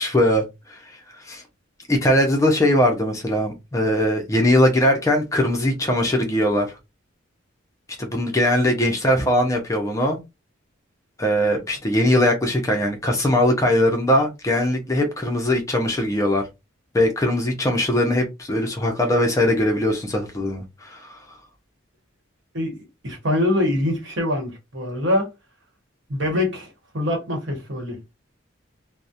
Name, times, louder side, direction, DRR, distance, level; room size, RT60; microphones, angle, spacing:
voice 1, 0.0-1.4 1.9-6.7 8.0-10.2 11.2-16.4 16.9-21.2, left 1 dB, 15° left, 0.4 m, -20 dB
voice 2, 22.5-25.3 26.1-26.7 26.9-28.0, left 1 dB, 65° right, 1.0 m, -24 dB
2.3 x 2.0 x 2.6 m
head